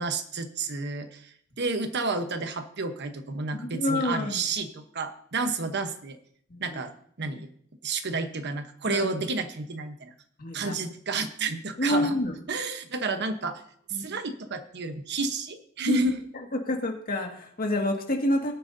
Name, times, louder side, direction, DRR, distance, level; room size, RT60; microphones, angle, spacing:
voice 1, 0.0-6.2 6.6-6.9 7.2-7.5 7.8-10.1 10.5-12.1 12.5-13.6 13.9-16.1, right 3 dB, 55° right, 8 dB, 1.0 m, -31 dB
voice 2, 3.6-4.4 6.5-6.8 7.2-7.4 8.9-9.1 10.4-10.8 11.8-12.3 13.9-14.2 15.9-16.0 16.7-18.5, left 1 dB, 45° left, 2 dB, 1.9 m, -28 dB
20.0 x 8.9 x 2.7 m, 0.63 s
head